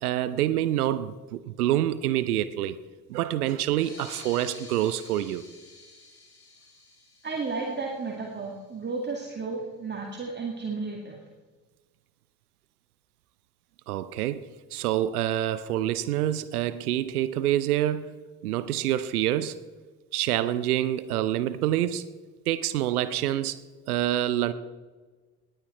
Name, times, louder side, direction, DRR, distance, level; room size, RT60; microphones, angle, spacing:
voice 1, 0.0-2.8 3.1-5.4 13.9-18.1 18.4-19.5 20.1-22.1 22.5-23.6 23.9-24.5, right 12 dB, 70° right, 0.7 m, -27 dB
sound 1, 3.6-8.7, left 3 dB, 75° left, 3.5 m, -49 dB
voice 2, 7.2-11.2, right 4 dB, 20° right, 2.2 m, -33 dB
19.5 x 9.0 x 4.4 m
figure-of-eight pair, 55°, 46 cm